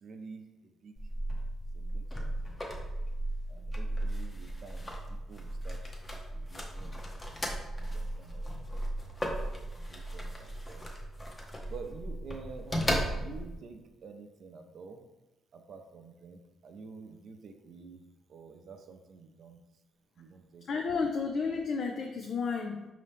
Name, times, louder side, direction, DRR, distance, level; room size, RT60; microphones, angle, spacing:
voice 1, 0.0-0.9 1.7-2.6 3.5-5.8 6.3-8.4 9.9-10.8 11.7-15.0 15.5-18.0 18.3-19.6 20.2-20.8, right 4 dB, 60° right, 6 dB, 0.5 m, -49 dB
sound 1, 1.0-13.6, right 1 dB, 20° left, 0.8 m, -36 dB
voice 2, 20.7-22.9, left 5 dB, 60° left, 2 dB, 0.5 m, -32 dB
5.1 x 2.8 x 3.4 m, 1.0 s
cardioid pair, 90°, 0 cm